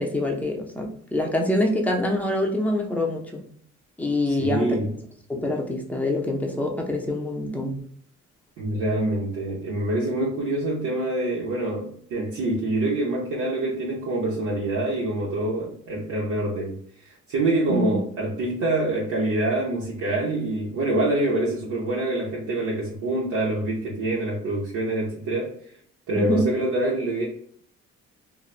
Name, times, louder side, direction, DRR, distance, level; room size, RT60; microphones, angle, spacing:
voice 1, 0.0-3.4 4.0-4.8 5.3-7.8 17.7-18.0 26.1-26.5, left 1 dB, 5° left, 0 dB, 0.5 m, -25 dB
voice 2, 4.3-4.9 8.6-25.6 26.1-27.2, right 2 dB, 80° right, -6 dB, 0.7 m, -26 dB
2.9 x 2.0 x 2.4 m, 0.63 s
cardioid pair, 90°, 30 cm